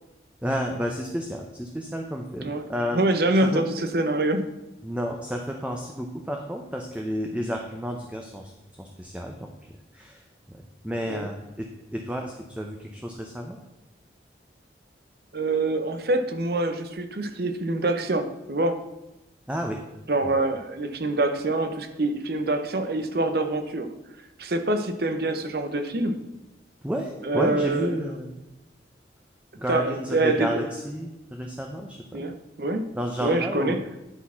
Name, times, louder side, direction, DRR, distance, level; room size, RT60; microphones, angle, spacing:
voice 1, 0.4-3.1 3.4-3.6 4.8-8.5 8.8-13.6 19.5-19.8 26.8-28.3 29.6-32.3 32.9-33.8, equal, 5° right, 2 dB, 0.6 m, -31 dB
voice 2, 2.9-4.5 11.1-11.3 15.3-18.8 20.1-23.9 24.4-26.2 27.2-27.9 29.7-30.6 32.1-32.8 33.2-33.8, right 2 dB, 55° right, 8 dB, 0.7 m, -25 dB
9.8 x 4.2 x 5.6 m, 0.99 s
head